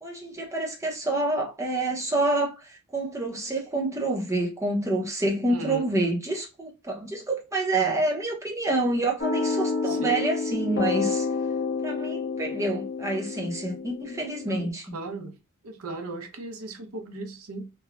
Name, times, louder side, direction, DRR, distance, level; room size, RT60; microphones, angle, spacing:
voice 1, 0.0-11.3 11.8-14.8, right 2 dB, 15° right, 0.8 m, -27 dB
voice 2, 5.5-5.9 7.7-8.0 9.8-10.2 14.5-15.4 15.6-17.7, right 2 dB, 70° right, 0.7 m, -37 dB
sound 1, 9.2-14.7, left 4 dB, 55° left, 1.0 m, -29 dB
3.0 x 2.3 x 2.4 m
head